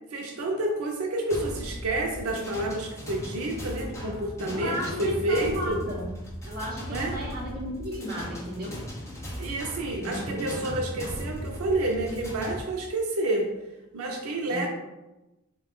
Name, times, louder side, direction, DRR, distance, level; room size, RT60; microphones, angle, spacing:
voice 1, 0.1-5.8 6.9-7.2 9.4-13.5 13.9-14.7, right 2 dB, 90° right, 0 dB, 0.5 m, -29 dB
sound 1, 1.3-12.6, equal, 15° left, 0.6 m, -37 dB
voice 2, 4.5-6.1 6.4-8.8 9.9-10.8 14.5-14.7, equal, 45° right, -4 dB, 0.9 m, -34 dB
3.7 x 2.3 x 3.5 m, 1.0 s
head